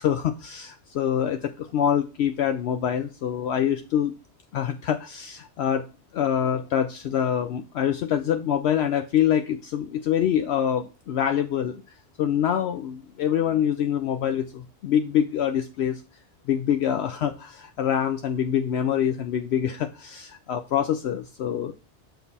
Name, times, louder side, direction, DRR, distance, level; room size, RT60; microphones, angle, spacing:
voice 1, 0.0-4.1 4.5-5.8 6.1-11.8 12.2-16.0 16.5-21.7, left 9 dB, 70° left, 7 dB, 0.8 m, -25 dB
7.1 x 4.0 x 4.1 m, 0.31 s
omnidirectional pair, 1.2 m